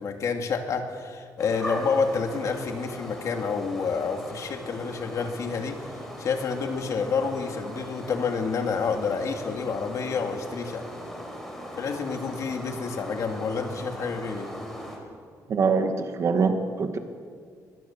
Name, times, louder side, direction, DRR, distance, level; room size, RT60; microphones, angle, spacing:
voice 1, 0.0-5.8 6.2-10.8 11.8-14.5, left 5 dB, 50° left, 5 dB, 2.5 m, -29 dB
sound 1, 1.4-15.0, equal, 5° left, 4.4 m, -39 dB
voice 2, 15.5-17.0, right 5 dB, 45° right, 7 dB, 2.0 m, -24 dB
23.0 x 22.0 x 7.3 m, 2.2 s
cardioid pair, 155°, 7 cm